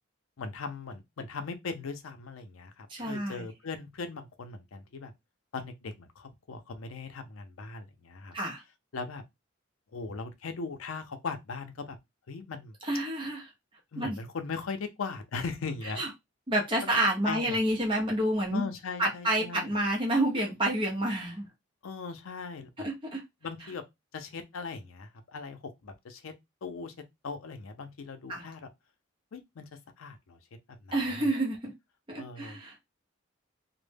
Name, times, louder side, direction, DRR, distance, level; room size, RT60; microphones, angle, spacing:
voice 1, 0.4-5.1 5.5-8.4 8.9-9.2 9.9-12.0 12.3-12.7 13.9-16.1 16.8-16.9 17.2-17.6 18.5-19.7 21.8-22.9 23.4-23.8 24.1-26.3 26.6-26.9 27.2-28.7 29.3-29.7 30.0-30.4 30.8-31.3 32.2-32.6, left 4 dB, 85° left, 0.5 m, -39 dB
voice 2, 2.9-3.4 8.3-8.6 12.9-13.4 14.0-14.2 16.0-16.1 16.5-18.6 19.0-21.5 22.8-23.2 28.3-28.4 30.9-31.7 32.1-32.8, right 1 dB, 25° right, 0.6 m, -29 dB
2.1 x 2.1 x 3.2 m
head